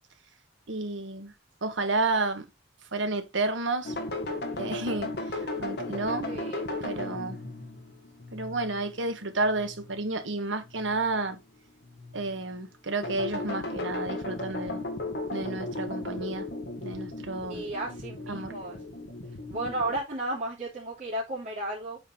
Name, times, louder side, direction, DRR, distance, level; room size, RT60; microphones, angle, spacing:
voice 1, 0.7-1.3 1.6-2.5 2.9-3.9 4.6-6.3 6.8-7.4 8.3-11.4 12.1-14.8 15.3-16.5 16.8-17.6 18.3-18.5, right 3 dB, 85° right, 1.4 m, -31 dB
sound 1, 3.8-10.0 10.6-11.2 11.8-12.4 13.0-20.0, left 2 dB, 60° left, 1.8 m, -36 dB
voice 2, 6.3-6.7 17.5-18.8 19.5-22.0, right 1 dB, 45° right, 2.9 m, -33 dB
8.2 x 4.5 x 3.6 m
head